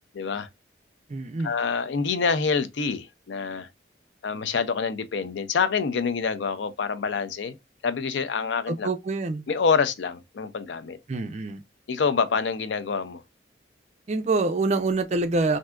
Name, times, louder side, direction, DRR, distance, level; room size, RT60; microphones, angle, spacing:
voice 1, 0.1-0.5 1.4-3.7 4.2-7.6 7.8-8.9 9.5-11.0 11.9-13.2, left 5 dB, 80° left, 0.5 m, -26 dB
voice 2, 1.1-1.6 8.7-9.4 11.1-11.6 14.1-15.6, right 3 dB, 40° right, 0.4 m, -26 dB
3.4 x 2.6 x 2.2 m
head